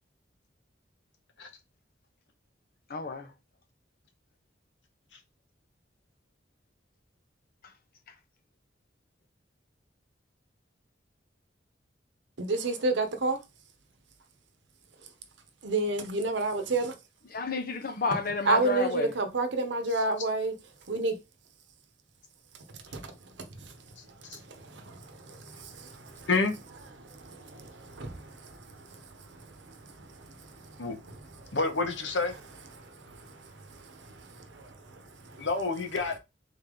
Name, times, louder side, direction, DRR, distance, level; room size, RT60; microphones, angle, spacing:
voice 1, 2.9-3.3 17.3-19.1, left 4 dB, 55° left, 0.8 m, -31 dB
voice 2, 12.4-13.4 15.6-17.0 18.4-20.5 20.9-21.2 22.9-26.3 27.0-31.6 32.8-35.5, right 2 dB, 70° right, 0.9 m, -32 dB
voice 3, 31.5-32.3 35.4-36.2, left 3 dB, 70° left, 1.2 m, -28 dB
4.0 x 3.5 x 3.7 m
head